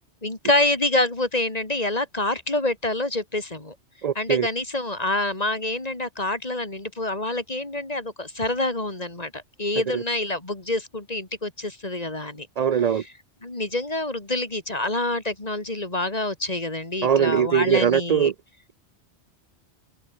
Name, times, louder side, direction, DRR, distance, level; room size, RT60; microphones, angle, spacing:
voice 1, 0.2-3.7 4.1-12.5 12.9-13.1 13.4-18.3, left 2 dB, 35° left, 3.0 m, -27 dB
voice 2, 4.0-4.5 9.9-10.0 12.6-13.0 17.0-18.3, right 8 dB, 50° right, 0.5 m, -21 dB
open air
omnidirectional pair, 1.2 m